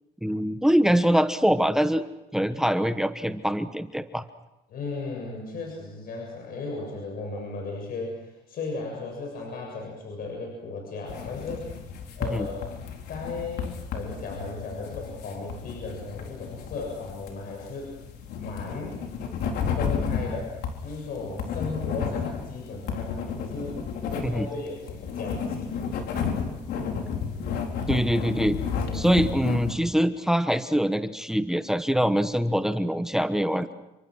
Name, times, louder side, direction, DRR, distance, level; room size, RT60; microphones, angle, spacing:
voice 1, 0.2-2.0 2.3-4.2 12.3-12.5 24.2-24.5 27.9-28.6 28.9-33.7, equal, 5° right, 10 dB, 1.2 m, -24 dB
voice 2, 4.7-11.7 12.2-18.0 18.4-19.0 19.7-23.2 23.4-23.8 24.1-25.8 28.7-29.2, left 3 dB, 60° left, 1 dB, 7.4 m, -36 dB
sound 1, 11.1-29.7, left 6 dB, 75° left, 4.5 m, -32 dB
29.5 x 25.0 x 6.4 m, 0.96 s
cardioid pair, 110°, 17 cm